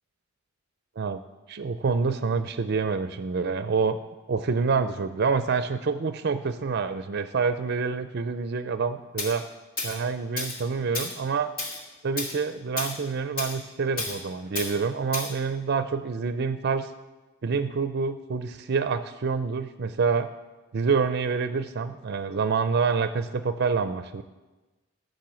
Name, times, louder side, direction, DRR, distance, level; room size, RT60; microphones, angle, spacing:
voice 1, 1.5-4.0 4.3-9.4 9.8-11.5 12.0-16.9 17.4-20.3 20.7-24.2, right 5 dB, 55° right, 11 dB, 0.5 m, -27 dB
Tools, 9.2-9.3 9.8-10.0 10.4-10.6 10.9-11.2 11.6-11.8 12.2-12.4 12.8-13.0 13.4-13.6 14.0-14.2 14.6-14.7 15.1-15.3, left 3 dB, 45° left, 1.9 m, -31 dB
13.5 x 6.4 x 7.5 m, 1.2 s
head